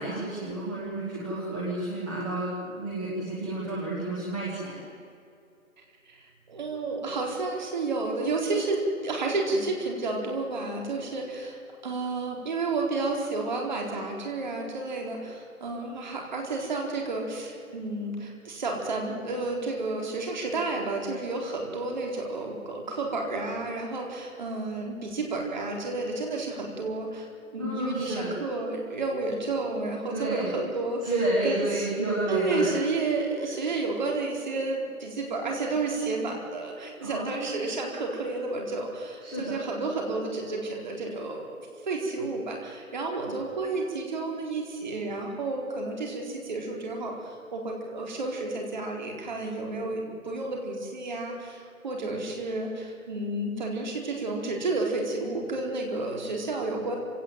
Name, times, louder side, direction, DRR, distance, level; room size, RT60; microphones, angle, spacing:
voice 1, 0.0-4.8 27.6-28.4 30.1-30.6 31.0-32.7 37.0-37.8 39.2-39.6, right 1 dB, 5° right, -9 dB, 1.2 m, -30 dB
voice 2, 6.1-31.1 31.4-31.9 32.3-57.0, right 3 dB, 30° right, 1 dB, 4.2 m, -31 dB
26.5 x 17.0 x 9.1 m, 2.6 s
figure-of-eight pair, 170°, 43 cm